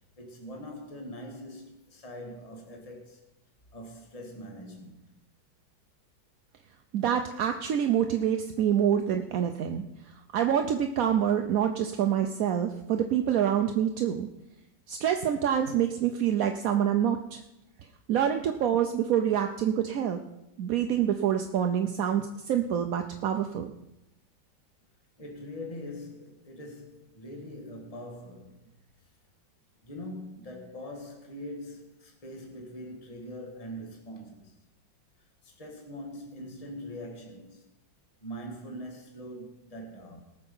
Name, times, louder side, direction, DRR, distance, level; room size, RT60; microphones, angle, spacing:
voice 1, 0.2-3.3 3.7-5.1 25.2-28.7 29.8-34.6 35.2-37.7 38.2-40.2, equal, 20° left, 1.8 m, -42 dB
voice 2, 6.9-9.8 10.3-14.3 14.9-17.4 18.1-20.2 20.6-23.7, right 9 dB, 65° right, 0.9 m, -26 dB
18.5 x 6.8 x 5.5 m
omnidirectional pair, 2.1 m